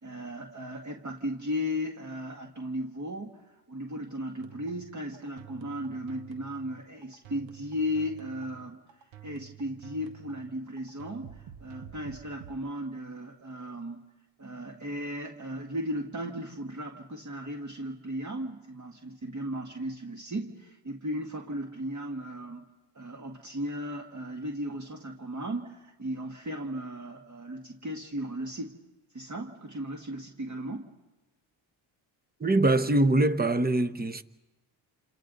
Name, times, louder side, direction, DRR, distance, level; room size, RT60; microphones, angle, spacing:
voice 1, 0.0-8.8 9.2-14.1 14.4-22.7 22.9-28.8 29.1-30.9, equal, 35° right, 1.9 m, -36 dB
sound 1, 4.4-12.6, right 10 dB, 80° right, 1.4 m, -50 dB
voice 2, 32.4-34.2, right 2 dB, 20° right, 1.0 m, -23 dB
28.5 x 27.5 x 4.0 m
cardioid pair, 85°, 48 cm